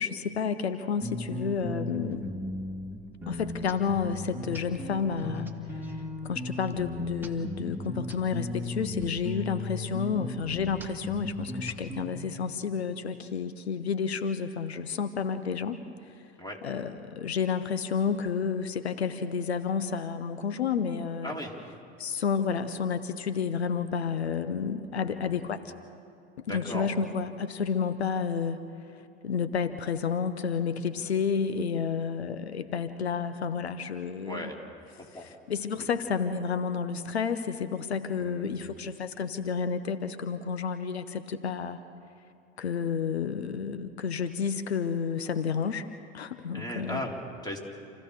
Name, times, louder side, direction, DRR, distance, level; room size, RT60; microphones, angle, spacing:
voice 1, 0.0-2.2 3.3-5.9 6.2-15.8 16.6-21.4 22.0-25.6 26.5-28.6 28.9-34.5 35.2-41.8 42.6-45.9 46.1-47.0, left 6 dB, 90° left, 11 dB, 0.8 m, -30 dB
sound 1, 1.0-12.1, left 1 dB, 5° right, 2.2 m, -36 dB
voice 2, 21.2-21.6 24.9-25.5 26.5-26.9 34.2-34.6 35.0-35.3 35.8-35.9 38.2-38.7 46.5-47.6, left 1 dB, 10° left, 0 dB, 3.8 m, -37 dB
28.0 x 15.5 x 6.7 m, 2.7 s
hypercardioid pair, 70°, 31 cm